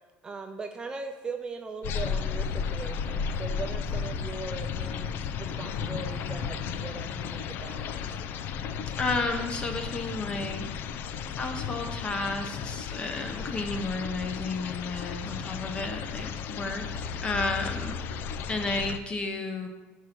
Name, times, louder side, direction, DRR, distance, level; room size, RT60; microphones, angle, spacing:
voice 1, 0.2-8.2, right 4 dB, 20° right, 5 dB, 0.4 m, -40 dB
sound 1, 1.8-19.0, left 6 dB, 50° left, 0.4 m, -34 dB
voice 2, 9.0-10.7 11.4-18.2 18.5-19.7, left 3 dB, 25° left, 5 dB, 0.8 m, -32 dB
6.3 x 4.7 x 5.8 m, 1.2 s
cardioid pair, 155°, 4 cm